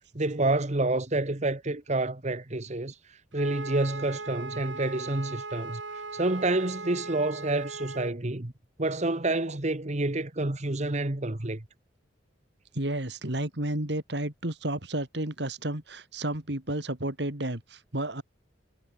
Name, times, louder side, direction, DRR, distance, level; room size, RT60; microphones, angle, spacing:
voice 1, 0.1-2.9 3.3-8.5 8.8-11.6, right 2 dB, 40° right, 1.5 m, -28 dB
Wind instrument woodwind instrument, 3.3-8.1, right 3 dB, 80° right, 3.1 m, -39 dB
voice 2, 12.7-18.2, right 1 dB, 65° right, 3.5 m, -32 dB
head